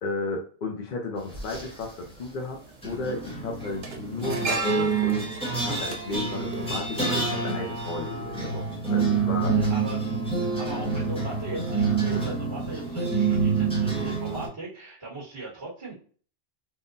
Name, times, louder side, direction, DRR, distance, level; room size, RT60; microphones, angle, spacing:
voice 1, 0.0-2.6 2.8-8.6 8.9-9.6, left 3 dB, 60° left, 1 dB, 0.7 m, -33 dB
sound 1, 1.3-1.9 2.8-14.5, right 4 dB, 5° left, 1.0 m, -27 dB
sound 2, 1.3-1.4 2.6-2.9 3.2-7.5 7.8-7.9, right 4 dB, 85° right, 0.9 m, -35 dB
voice 2, 9.4-10.0 10.4-15.9, right 2 dB, 30° right, -7 dB, 1.1 m, -39 dB
3.6 x 2.1 x 2.6 m, 0.43 s
omnidirectional pair, 1.0 m